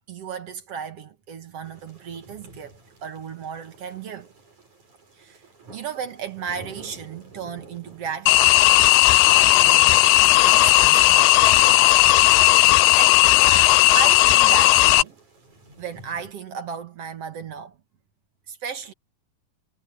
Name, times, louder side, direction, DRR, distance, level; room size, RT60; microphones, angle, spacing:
voice 1, 0.1-4.3 5.1-5.4 5.7-8.7 9.2-10.0 10.3-11.8 12.6-13.2 13.9-15.2 15.8-17.8 18.5-18.9, right 7 dB, 60° right, 1.6 m, -35 dB
sound 1, 1.6-16.3, right 2 dB, 45° right, 9.5 m, -50 dB
sound 2, 8.3-15.0, left 17 dB, 80° left, 2.6 m, -15 dB
omnidirectional pair, 4.8 m